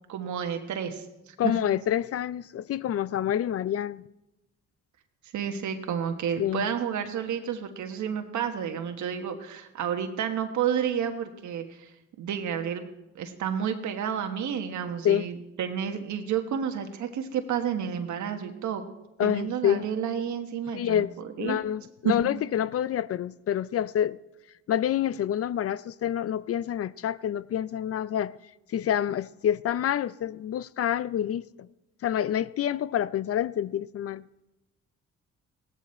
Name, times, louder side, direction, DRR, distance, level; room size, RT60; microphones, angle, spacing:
voice 1, 0.1-1.5 5.3-11.9 12.2-12.9 13.1-18.8 19.2-21.1 21.4-21.6 22.0-22.2, right 8 dB, 70° right, 1.3 m, -30 dB
voice 2, 1.4-4.0 6.4-6.7 15.0-15.3 19.2-19.9 20.7-24.2 24.7-28.3 28.7-31.4 32.0-34.2, left 10 dB, 50° left, 0.5 m, -27 dB
16.5 x 13.5 x 4.4 m
cardioid pair, 90°, 30 cm